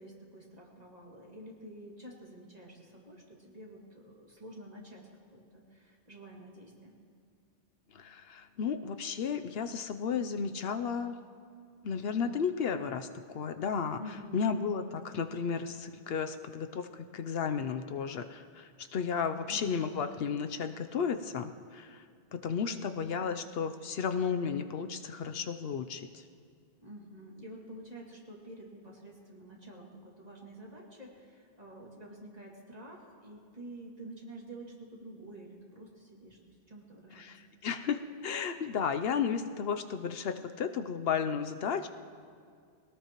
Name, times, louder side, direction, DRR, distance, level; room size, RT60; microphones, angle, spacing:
voice 1, 0.0-6.9 14.0-14.5 19.5-19.9 22.7-23.2 26.8-37.3, right 1 dB, 40° right, -3 dB, 2.5 m, -49 dB
voice 2, 7.9-11.2 11.8-14.0 14.3-22.0 22.3-26.2 37.2-41.9, left 6 dB, 70° left, 8 dB, 0.9 m, -33 dB
22.0 x 18.0 x 3.0 m, 2.2 s
omnidirectional pair, 1.0 m